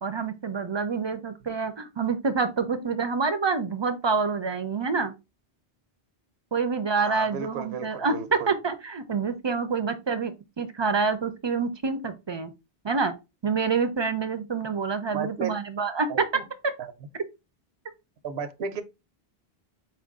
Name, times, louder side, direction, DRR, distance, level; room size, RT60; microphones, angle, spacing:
voice 1, 0.0-5.1 6.5-8.1 8.5-12.5 12.8-13.1 13.4-16.3, right 5 dB, 45° right, 0.3 m, -27 dB
voice 2, 7.0-8.5 15.1-15.5 16.1-16.4 16.8-16.9 18.2-18.8, right 6 dB, 85° right, 0.9 m, -34 dB
4.4 x 2.5 x 3.5 m
omnidirectional pair, 1.0 m